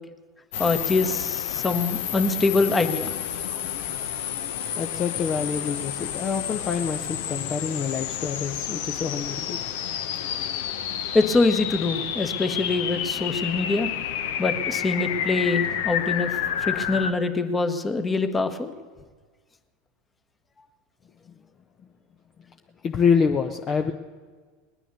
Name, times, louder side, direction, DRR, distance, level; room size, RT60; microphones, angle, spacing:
sound 1, 0.5-17.1, left 9 dB, 65° left, 0.9 m, -30 dB
voice 1, 0.6-3.1 11.1-13.9 14.4-16.3 16.6-18.7, left 3 dB, 15° left, 9 dB, 1.3 m, -24 dB
voice 2, 4.8-9.6 22.8-23.9, left 6 dB, 35° left, 5 dB, 0.9 m, -26 dB
20.0 x 10.0 x 6.9 m, 1.5 s
figure-of-eight pair, 80°, 0 cm